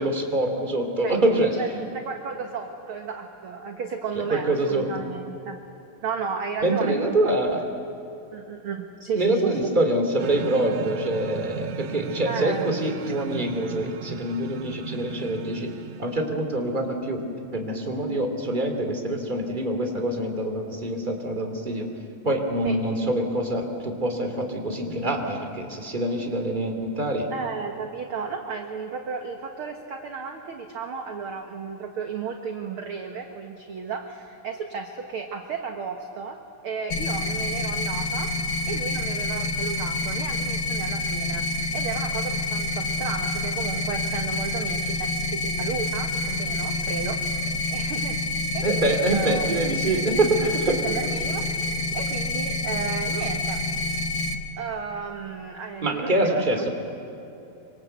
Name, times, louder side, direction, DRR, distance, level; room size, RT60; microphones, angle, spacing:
voice 1, 0.0-1.5 4.1-4.9 6.6-7.6 9.2-15.7 16.0-17.2 17.5-21.9 22.2-27.3 48.6-50.8 55.8-56.7, right 1 dB, 15° right, 4 dB, 2.4 m, -25 dB
voice 2, 1.0-5.6 6.0-7.6 8.3-9.6 12.2-12.7 22.6-22.8 27.3-38.3 38.7-41.5 41.7-49.5 50.1-50.5 50.8-51.6 51.9-53.6 54.6-56.7, right 5 dB, 55° right, 4 dB, 1.6 m, -33 dB
sound 1, 10.2-16.4, right 9 dB, 90° right, 1.3 m, -36 dB
sound 2, 36.9-54.3, left 2 dB, 50° left, 1.6 m, -27 dB
26.5 x 25.0 x 8.1 m, 2.8 s
omnidirectional pair, 3.9 m